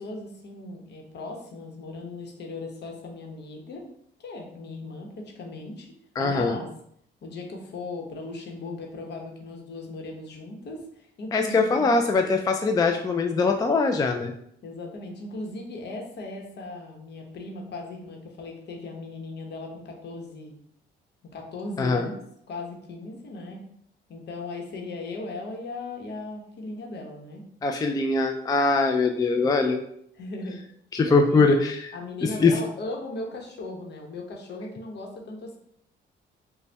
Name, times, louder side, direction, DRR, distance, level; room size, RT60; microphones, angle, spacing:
voice 1, 0.0-3.9 4.2-5.9 6.2-6.7 7.2-11.9 14.6-20.6 21.3-22.2 22.5-23.6 24.1-27.4 30.1-30.6 31.0-31.5 31.9-35.6, left 2 dB, 60° left, 1 dB, 0.9 m, -37 dB
voice 2, 6.2-6.6 11.3-14.3 21.8-22.1 27.6-29.8 30.9-31.9 32.2-32.5, left 3 dB, 20° left, 4 dB, 0.3 m, -22 dB
3.9 x 2.2 x 3.3 m, 0.69 s
cardioid pair, 90°, 20 cm